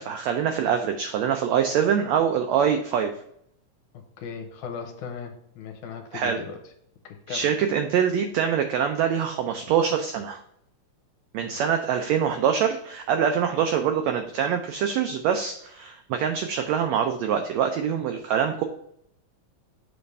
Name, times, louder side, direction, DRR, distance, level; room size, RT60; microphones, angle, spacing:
voice 1, 0.0-3.1 6.1-6.4 7.3-10.4 11.3-18.6, right 8 dB, 85° right, 5 dB, 1.5 m, -24 dB
voice 2, 3.9-6.6 7.0-7.5 11.4-11.6, left 6 dB, 75° left, 4 dB, 2.3 m, -38 dB
7.2 x 3.4 x 5.3 m, 0.72 s
omnidirectional pair, 3.7 m